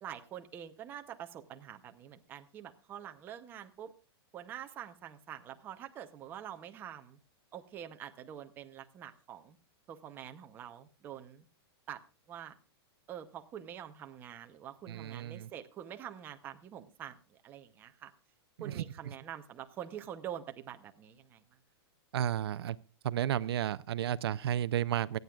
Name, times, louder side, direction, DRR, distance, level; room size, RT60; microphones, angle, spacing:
voice 1, 0.0-3.9 4.3-7.2 7.5-9.6 9.9-11.5 11.9-12.0 12.3-12.5 13.1-18.1 18.6-21.4, right 10 dB, 15° right, 0.7 m, -46 dB
voice 2, 14.9-15.5 18.7-18.8 22.1-22.8 23.0-25.2, right 10 dB, 65° right, 0.6 m, -32 dB
25.0 x 9.3 x 2.3 m
supercardioid pair, 175°, 14 cm